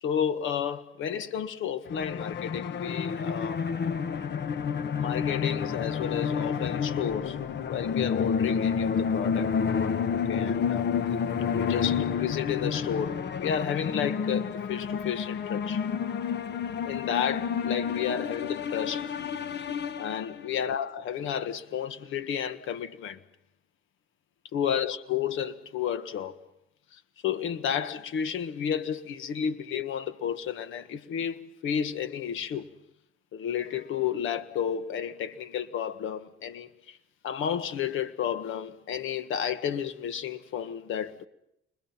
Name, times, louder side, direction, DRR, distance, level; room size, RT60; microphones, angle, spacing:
voice 1, 0.0-3.6 5.0-7.4 7.7-9.5 10.1-10.9 11.5-15.9 16.8-19.1 20.0-23.2 24.5-26.4 26.9-32.7 33.3-37.0 37.2-41.3, left 8 dB, 80° left, 1.6 m, -32 dB
sound 1, 1.9-20.6, left 6 dB, 60° left, 1.3 m, -30 dB
29.5 x 26.0 x 5.9 m
cardioid pair, 90°, 20 cm